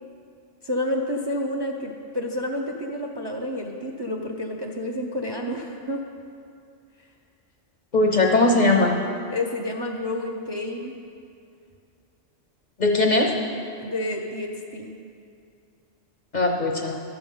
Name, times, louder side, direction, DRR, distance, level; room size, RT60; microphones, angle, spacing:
voice 1, 0.6-6.0 9.3-11.0 13.8-14.9, left 1 dB, 30° right, 1 dB, 0.5 m, -29 dB
voice 2, 7.9-9.0 12.8-13.4 16.3-17.0, left 2 dB, 45° left, 2 dB, 0.7 m, -19 dB
12.0 x 7.1 x 5.4 m, 2.4 s
omnidirectional pair, 1.3 m